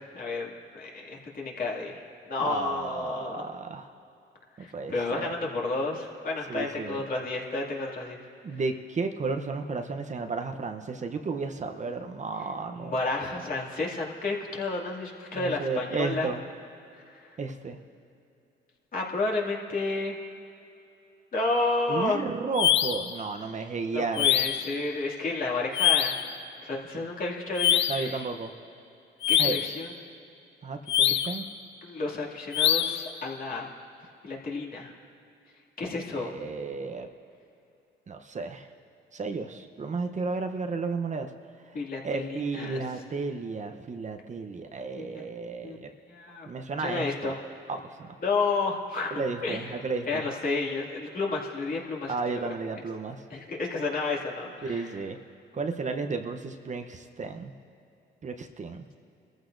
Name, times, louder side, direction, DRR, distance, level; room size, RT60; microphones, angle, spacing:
voice 1, 0.0-2.0 2.3-3.4 4.6-8.2 12.7-16.4 18.9-20.1 21.3-22.3 23.9-26.2 26.6-28.2 29.3-29.9 31.8-33.7 34.2-34.9 35.8-36.3 41.7-42.8 45.0-45.2 45.6-45.8 46.1-46.5 46.8-47.3 48.2-49.6 50.1-52.5 53.3-54.9, left 3 dB, 45° left, -2 dB, 2.3 m, -31 dB
voice 2, 2.4-3.9 4.6-5.3 6.5-7.0 8.4-13.0 15.3-16.4 17.4-17.8 21.9-24.3 26.9-27.0 27.9-28.5 29.4-29.6 30.6-31.4 36.2-37.1 38.1-38.7 39.1-41.3 41.7-45.9 46.5-47.4 47.7-48.2 49.1-50.3 52.1-53.2 54.6-55.2 55.5-57.5 58.2-58.8, right 4 dB, 35° right, 5 dB, 0.8 m, -33 dB
sound 1, 22.5-23.1 24.1-24.7 25.7-26.3 27.6-28.1 29.2-29.8 30.9-31.4 32.5-33.1, left 10 dB, 65° left, 0.6 m, -24 dB
22.5 x 14.5 x 2.6 m, 2.7 s
cardioid pair, 90°, 20 cm